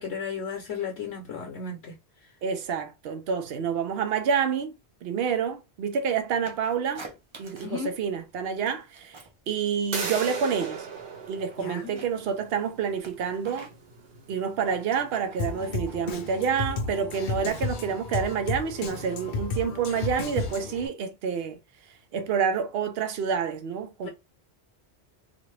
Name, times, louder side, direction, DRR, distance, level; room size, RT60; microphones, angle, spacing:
voice 1, 0.0-2.0 7.6-7.9 11.6-12.0 24.0-24.1, left 6 dB, 85° left, 1.0 m, -34 dB
voice 2, 2.4-4.7 5.0-7.0 7.4-9.2 9.5-10.9 11.3-13.7 14.3-21.6 22.1-24.1, right 6 dB, 65° right, 0.8 m, -28 dB
sound 1, 6.4-7.8 8.1-9.4 9.7-11.1 11.4-16.8, right 3 dB, 35° right, 0.5 m, -48 dB
sound 2, 9.9-15.5, right 5 dB, 85° right, 1.3 m, -38 dB
Drum kit, 15.4-20.9, left 3 dB, 55° left, 0.6 m, -33 dB
2.5 x 2.4 x 3.1 m
omnidirectional pair, 1.1 m